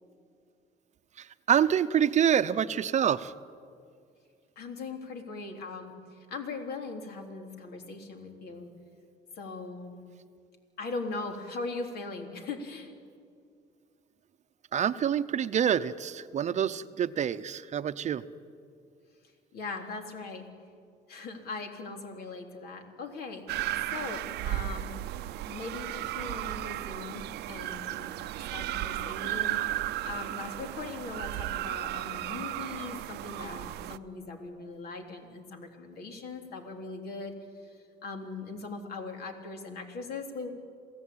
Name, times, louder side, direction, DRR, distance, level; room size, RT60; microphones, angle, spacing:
voice 1, 1.2-3.3 14.7-18.2, right 9 dB, 45° right, 12 dB, 0.8 m, -27 dB
voice 2, 4.6-8.7 9.4-10.0 10.8-12.9 19.5-20.5 21.1-23.4 23.9-24.9 25.4-28.2 28.5-29.6 30.0-37.3 37.6-40.5, left 3 dB, 65° left, 3 dB, 3.4 m, -40 dB
sound 1, 23.5-34.0, right 14 dB, 80° right, 0.7 m, -35 dB
28.0 x 16.0 x 8.7 m, 2.3 s
cardioid pair, 110°, 17 cm